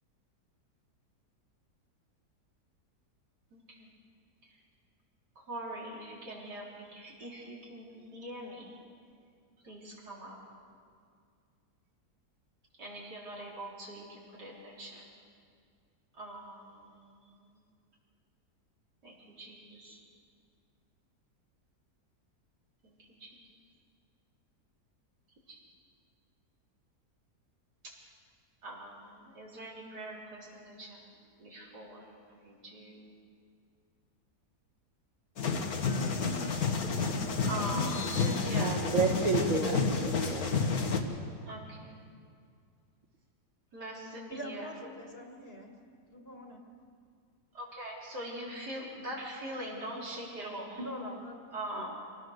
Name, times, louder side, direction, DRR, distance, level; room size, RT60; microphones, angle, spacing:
voice 1, 3.5-3.9 4.4-4.6 5.4-8.8 9.6-10.4 12.8-15.1 16.1-17.6 19.0-20.0 22.8-23.4 25.5-25.6 27.8-27.9 28.6-31.1 31.4-33.1 37.4-38.8 39.2-39.5 41.5-42.1 43.7-44.8 47.5-50.8 51.5-51.9, right 1 dB, 90° right, -4 dB, 4.7 m, -43 dB
sound 1, 35.4-41.0, left 4 dB, 65° left, 1.9 m, -30 dB
voice 2, 38.5-40.6 40.9-41.0, right 5 dB, 25° right, 2 dB, 1.8 m, -31 dB
voice 3, 44.3-45.7 46.1-46.6 50.8-51.4 51.7-51.9, equal, 40° left, 2 dB, 2.2 m, -42 dB
24.5 x 18.5 x 6.6 m, 2.2 s
omnidirectional pair, 1.7 m